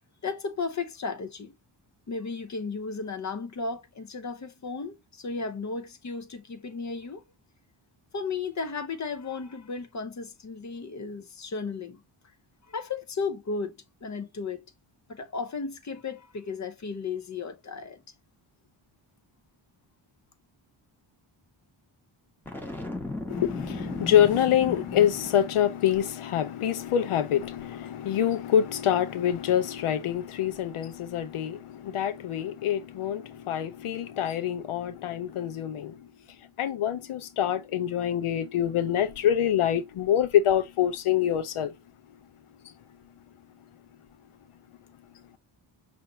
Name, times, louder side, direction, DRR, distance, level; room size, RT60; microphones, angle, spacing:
voice 1, 0.2-1.5 2.1-7.2 8.1-12.0 12.7-14.6 15.1-18.0, left 4 dB, 35° left, 0.7 m, -34 dB
Boom, 22.5-25.7, left 2 dB, 5° left, 1.2 m, -35 dB
voice 2, 23.3-36.0 36.6-41.7, left 10 dB, 80° left, 0.7 m, -26 dB
5.6 x 2.7 x 3.1 m
wide cardioid pair, 115°, 49 cm